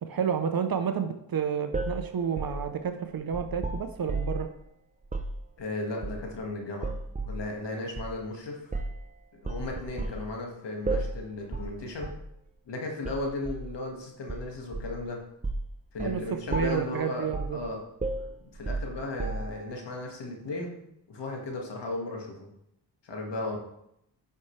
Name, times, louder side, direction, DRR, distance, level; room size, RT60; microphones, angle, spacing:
voice 1, 0.0-4.5 16.0-16.2 16.5-17.6, right 7 dB, 50° right, 7 dB, 0.8 m, -30 dB
sound 1, 1.7-4.5 5.0-5.4 6.0-6.4 6.8-7.4 8.0-8.1 8.7-9.0 9.4-10.2 10.9-11.2 11.5-11.7 12.0-12.3 13.0-13.7 14.3-15.0 15.4-15.7 16.0-16.2 16.5-16.9 17.3-17.6 18.0-19.7, right 2 dB, 15° right, 0.7 m, -33 dB
voice 2, 5.6-7.0 7.2-8.7 9.3-12.1 12.7-15.2 15.9-17.8 18.2-20.8 21.1-22.5 23.0-23.6, left 2 dB, 70° left, 1 dB, 1.9 m, -35 dB
10.5 x 5.6 x 3.2 m, 0.79 s
cardioid pair, 65°, 44 cm